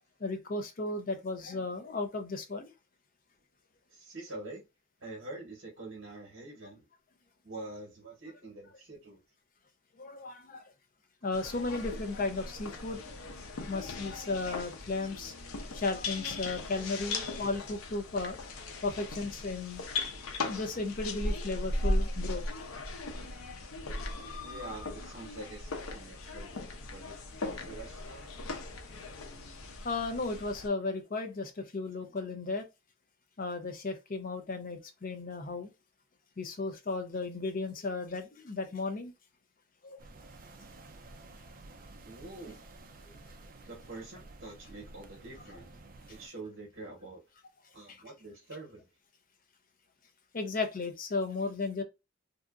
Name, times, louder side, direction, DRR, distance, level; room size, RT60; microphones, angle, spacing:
voice 1, 0.2-2.7 10.0-10.6 11.2-13.0 13.7-15.3 15.7-18.4 18.8-19.8 20.5-22.4 24.1-24.3 29.8-32.6 33.4-35.7 36.4-39.1 39.8-40.0 43.2-43.3 47.9-48.0 50.3-51.8, left 3 dB, 40° left, 0.5 m, -35 dB
voice 2, 3.9-4.6 5.0-6.9 7.4-9.2 12.9-13.6 24.4-28.3 42.0-42.6 43.7-45.7 46.1-47.2 47.7-48.9, right 2 dB, 65° right, 1.0 m, -46 dB
sound 1, 11.3-30.7, left 2 dB, 85° left, 0.6 m, -38 dB
sound 2, 40.0-46.3, right 2 dB, 40° right, 0.3 m, -52 dB
2.7 x 2.4 x 2.3 m
head